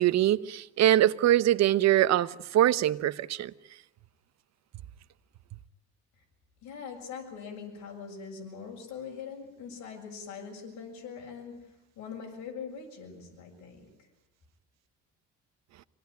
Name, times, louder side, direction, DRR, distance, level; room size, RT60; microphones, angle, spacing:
voice 1, 0.0-3.5, right 13 dB, 60° right, 1.0 m, -23 dB
voice 2, 6.6-11.5 12.0-13.9, left 6 dB, 70° left, 7.0 m, -42 dB
25.5 x 18.5 x 9.4 m
cardioid pair, 120°, 30 cm